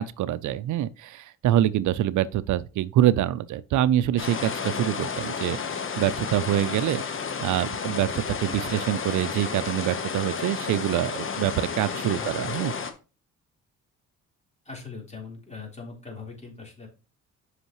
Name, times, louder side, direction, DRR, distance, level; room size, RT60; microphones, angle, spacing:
voice 1, 0.0-7.0 7.4-12.7, right 12 dB, 75° right, 0.5 m, -25 dB
sound 1, 4.2-12.9, left 6 dB, 45° left, 1.3 m, -32 dB
voice 2, 11.8-12.5 14.7-16.9, left 4 dB, 20° left, 3.7 m, -41 dB
8.1 x 5.7 x 3.0 m
cardioid pair, 90°, 30 cm